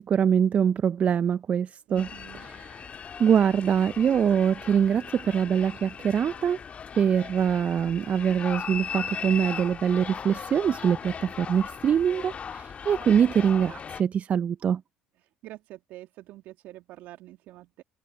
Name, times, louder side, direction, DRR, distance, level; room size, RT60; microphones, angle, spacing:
voice 1, 0.0-2.1 2.4-2.9 3.2-6.6 7.0-14.8, right 8 dB, 45° right, 0.7 m, -24 dB
voice 2, 1.9-2.5 14.2-14.3 15.4-17.8, right 16 dB, 65° right, 2.4 m, -46 dB
sound 1, 2.0-14.0, left 6 dB, 40° left, 1.9 m, -38 dB
hypercardioid pair, 55°, 3 cm